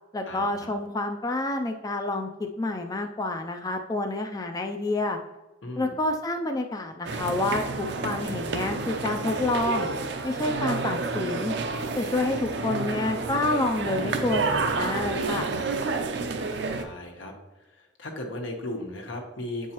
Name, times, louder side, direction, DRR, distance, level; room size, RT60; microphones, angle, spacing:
voice 1, 0.1-5.2 5.8-9.9 10.2-11.5 12.0-15.5, left 2 dB, 20° left, 4 dB, 0.4 m, -28 dB
voice 2, 5.6-5.9 10.8-11.0 16.7-17.3 17.7-19.7, left 1 dB, 85° left, 2 dB, 1.3 m, -36 dB
sound 1, 7.1-16.8, right 3 dB, 65° right, 0.6 m, -29 dB
7.8 x 4.6 x 2.9 m, 1.1 s
head